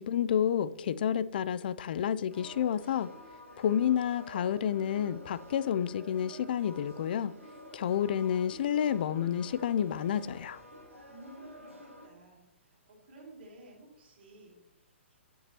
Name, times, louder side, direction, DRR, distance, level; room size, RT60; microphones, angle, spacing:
voice 1, 0.0-3.1 3.6-7.3 7.7-10.6, left 9 dB, 45° left, 0.3 m, -30 dB
sound 1, 2.3-12.1, equal, 90° right, 2.0 m, -50 dB
voice 2, 11.1-15.2, right 2 dB, 50° right, 2.6 m, -54 dB
8.8 x 6.8 x 2.9 m
figure-of-eight pair, 120°, 7 cm